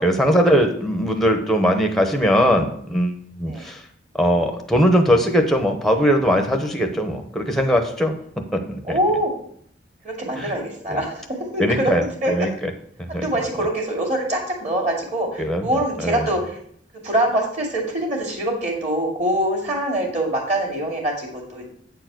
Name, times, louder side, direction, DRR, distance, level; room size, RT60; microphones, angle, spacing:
voice 1, 0.0-3.8 4.1-8.2 8.5-9.0 10.4-10.5 10.9-11.0 11.6-12.5 13.0-13.3 15.4-15.7 16.0-16.3, equal, ahead, 4 dB, 0.8 m, -20 dB
voice 2, 8.8-9.3 10.0-11.9 12.2-12.3 13.1-16.6 17.0-21.6, right 1 dB, 40° right, 1 dB, 2.2 m, -24 dB
8.6 x 4.6 x 6.0 m, 0.64 s
head